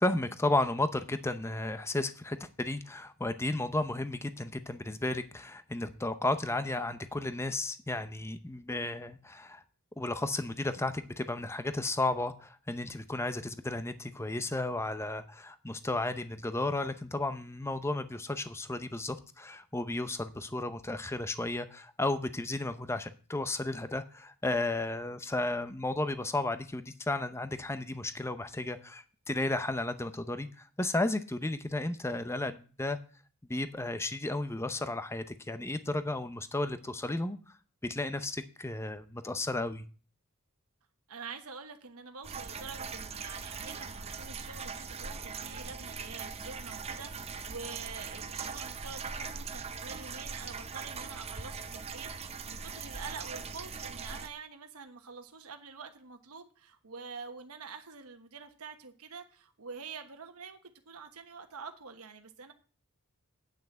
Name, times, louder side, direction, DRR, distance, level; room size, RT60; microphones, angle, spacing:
voice 1, 0.0-9.6 10.0-33.0 33.5-37.4 37.8-39.8, left 2 dB, 10° left, 11 dB, 0.6 m, -33 dB
voice 2, 41.1-62.5, right 5 dB, 80° right, 6 dB, 1.2 m, -46 dB
sound 1, 42.2-54.3, right 5 dB, 30° right, 0.7 m, -41 dB
9.2 x 5.9 x 7.7 m, 0.39 s
head